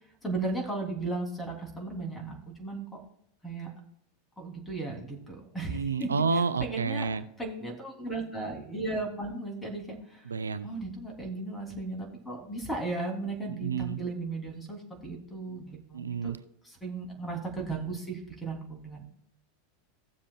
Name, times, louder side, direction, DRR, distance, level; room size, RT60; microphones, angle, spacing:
voice 1, 0.2-2.9 3.4-3.7 4.4-7.1 7.4-10.3 10.6-16.3 16.6-19.0, right 3 dB, 10° left, 1 dB, 3.2 m, -36 dB
voice 2, 5.7-7.2 10.3-10.7 13.6-14.0 15.9-16.4, right 5 dB, 80° right, 13 dB, 0.5 m, -29 dB
16.5 x 7.4 x 2.4 m, 0.71 s
figure-of-eight pair, 85°, 0 cm